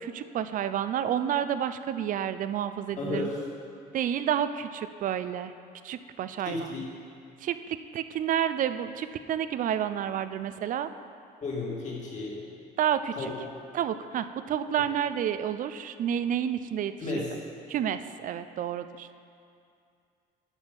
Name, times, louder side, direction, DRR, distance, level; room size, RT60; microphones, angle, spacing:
voice 1, 0.0-3.3 3.9-5.5 5.8-6.8 7.4-10.9 12.8-13.3 13.7-17.2 17.7-19.1, right 9 dB, 50° right, 12 dB, 0.5 m, -30 dB
voice 2, 3.0-3.4 6.4-6.9 11.4-12.4 13.2-13.3 17.0-17.3, left 3 dB, 45° left, -4 dB, 2.3 m, -33 dB
9.8 x 6.3 x 5.3 m, 2.4 s
cardioid pair, 110°, 17 cm